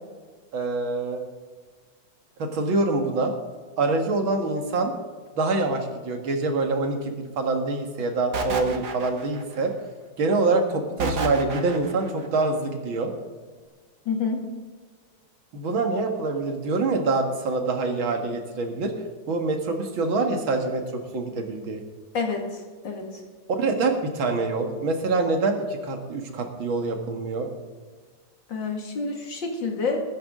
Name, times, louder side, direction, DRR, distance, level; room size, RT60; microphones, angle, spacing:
voice 1, 0.5-1.2 2.4-3.3 3.8-4.9 5.4-9.7 10.2-13.1 15.5-18.9 19.3-21.8 23.5-27.5, right 3 dB, 80° right, 4 dB, 2.5 m, -25 dB
sound 1, 8.3-9.6 11.0-12.1, right 4 dB, 55° right, 2.0 m, -30 dB
voice 2, 14.1-14.4 22.1-23.1 28.5-30.0, left 4 dB, 65° left, 2 dB, 2.8 m, -28 dB
20.5 x 9.9 x 3.7 m, 1.5 s
omnidirectional pair, 2.2 m